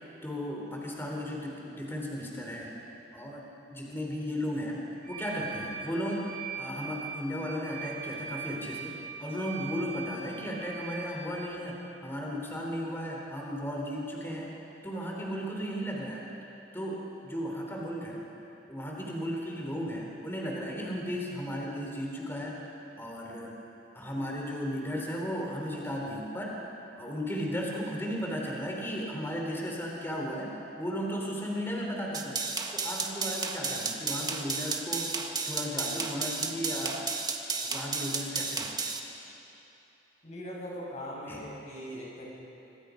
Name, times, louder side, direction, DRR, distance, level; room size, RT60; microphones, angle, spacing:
voice 1, 0.2-2.7 3.1-4.8 5.1-14.6 14.8-16.2 16.7-18.2 18.7-22.6 23.0-23.5 23.9-26.6 26.9-32.4 32.7-35.2 35.5-37.0 37.6-38.7 41.3-41.4, equal, 10° left, -2 dB, 3.7 m, -35 dB
sound 1, 5.0-11.4, right 6 dB, 50° right, 6.2 m, -41 dB
sound 2, 32.1-39.0, right 4 dB, 20° right, 1.4 m, -33 dB
voice 2, 40.2-42.3, equal, 40° left, -3 dB, 5.9 m, -40 dB
25.5 x 25.5 x 5.2 m, 2.9 s
head